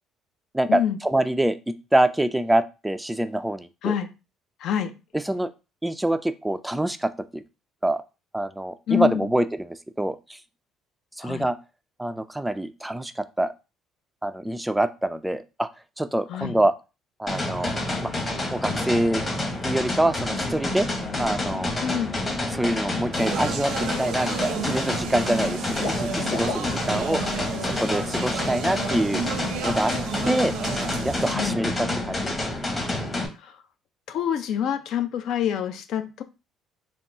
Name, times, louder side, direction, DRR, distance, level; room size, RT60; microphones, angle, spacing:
voice 1, 0.5-3.9 5.2-5.5 5.8-7.4 7.8-8.0 8.3-10.4 11.2-11.6 12.0-13.5 14.2-15.7 16.0-16.7 17.2-17.8 18.0-18.1 18.5-19.2 19.6-20.9 21.2-21.7 22.5-27.2 27.6-29.2 29.6-29.9 30.2-30.5 31.0-32.4, right 1 dB, 5° right, 0.3 m, -25 dB
voice 2, 4.6-4.9 8.9-9.3 11.2-11.5 16.3-16.5 21.8-22.1 31.3-31.6 33.4-33.5 34.1-36.2, left 9 dB, 65° left, 0.5 m, -26 dB
sound 1, 17.3-33.3, left 2 dB, 20° left, 1.0 m, -28 dB
Speech, 23.1-31.3, right 7 dB, 85° right, 0.7 m, -33 dB
Water / Liquid, 23.5-23.6 23.8-24.5 24.8-27.4 27.6-27.8 28.2-28.3, left 4 dB, 45° left, 1.4 m, -37 dB
3.6 x 2.3 x 3.8 m
cardioid pair, 120°, 0 cm